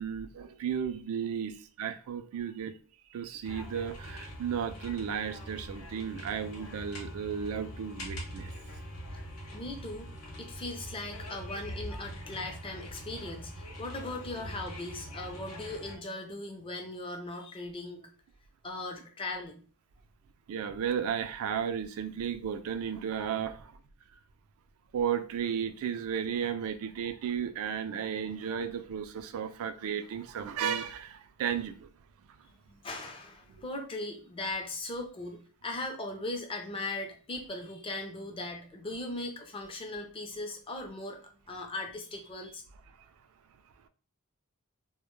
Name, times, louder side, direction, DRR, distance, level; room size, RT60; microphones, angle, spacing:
voice 1, 0.0-2.7 3.1-8.5 20.5-23.8 24.9-31.9 33.5-33.6, right 8 dB, 70° right, 0.3 m, -34 dB
sound 1, 3.4-16.0, equal, 85° left, 0.7 m, -43 dB
voice 2, 9.5-10.1 10.4-18.1 18.6-19.6 32.7-42.6, left 2 dB, 25° left, 0.5 m, -39 dB
2.1 x 2.1 x 3.0 m
head